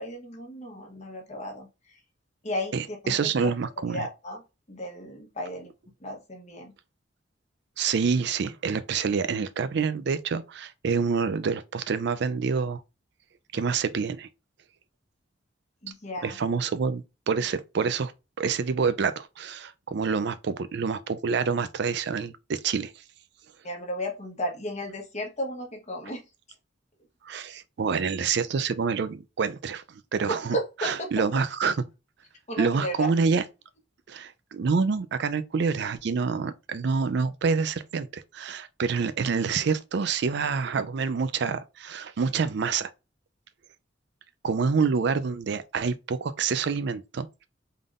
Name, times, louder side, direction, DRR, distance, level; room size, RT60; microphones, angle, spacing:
voice 1, 0.0-2.0 2.4-3.5 3.8-4.4 4.7-5.7 6.0-6.7 15.8-16.4 23.6-26.2 30.3-31.4 32.5-33.1, equal, 40° left, 1.1 m, -34 dB
voice 2, 2.7-4.1 7.8-12.8 13.5-14.3 16.2-18.1 18.4-22.9 27.2-30.6 30.8-31.8 32.6-33.4 34.1-42.9 44.4-47.5, right 5 dB, 65° right, 0.4 m, -27 dB
3.8 x 3.5 x 2.5 m
head